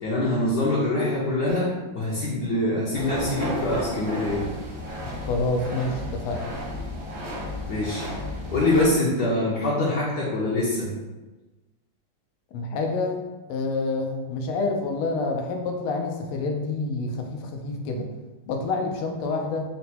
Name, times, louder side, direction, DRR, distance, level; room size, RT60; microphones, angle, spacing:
voice 1, 0.0-4.5 7.7-8.1 8.5-10.9, left 2 dB, 65° left, -6 dB, 1.1 m, -24 dB
sound 1, 2.9-8.9, left 1 dB, 60° right, 0.7 m, -33 dB
voice 2, 5.2-6.5 12.5-13.2 13.5-18.1 18.5-19.6, left 3 dB, 85° left, 2 dB, 1.5 m, -27 dB
4.2 x 2.2 x 4.2 m, 1.2 s
omnidirectional pair, 2.4 m